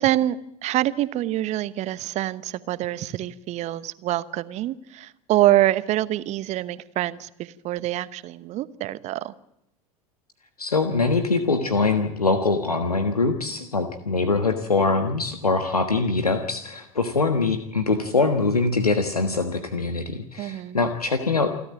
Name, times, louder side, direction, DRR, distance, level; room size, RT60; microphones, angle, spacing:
voice 1, 0.0-9.3 20.4-20.8, right 14 dB, 35° right, 16 dB, 1.0 m, -25 dB
voice 2, 10.6-21.5, left 3 dB, 80° left, 7 dB, 1.4 m, -23 dB
28.0 x 12.5 x 8.8 m, 0.83 s
figure-of-eight pair, 80°, 19 cm